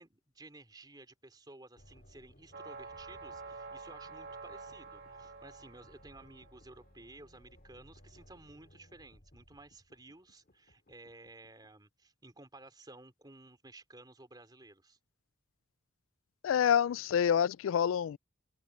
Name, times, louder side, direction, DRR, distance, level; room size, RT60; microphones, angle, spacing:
voice 1, 0.0-15.0, right 2 dB, 20° right, 3.4 m, -55 dB
sound 1, 1.8-11.7, equal, 45° left, 2.2 m, -61 dB
sound 2, 2.5-6.6, right 4 dB, 55° right, 1.9 m, -48 dB
voice 2, 16.4-18.2, left 8 dB, 90° left, 0.3 m, -27 dB
open air
head